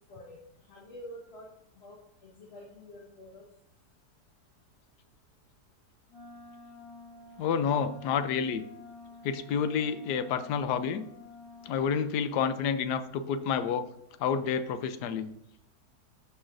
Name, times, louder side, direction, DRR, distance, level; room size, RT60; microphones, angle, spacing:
voice 1, 0.7-3.4, left 1 dB, 45° left, -3 dB, 1.4 m, -48 dB
Wind instrument woodwind instrument, 6.1-12.1, left 3 dB, 50° right, 3.9 m, -50 dB
voice 2, 7.4-8.6 9.2-11.1 11.6-13.8 14.2-15.3, left 7 dB, 85° left, 11 dB, 1.2 m, -29 dB
14.0 x 5.6 x 2.5 m, 0.72 s
omnidirectional pair, 1.7 m